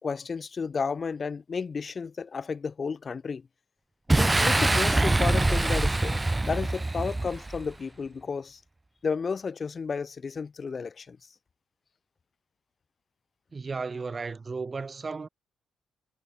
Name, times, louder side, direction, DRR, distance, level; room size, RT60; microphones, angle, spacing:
voice 1, 0.0-3.4 4.1-8.6 9.0-11.2, left 5 dB, 40° left, 2.4 m, -32 dB
Boom, 4.1-7.7, right 2 dB, 15° right, 2.1 m, -24 dB
voice 2, 13.5-15.3, right 4 dB, 30° right, 7.0 m, -34 dB
cardioid pair, 90°, 0 cm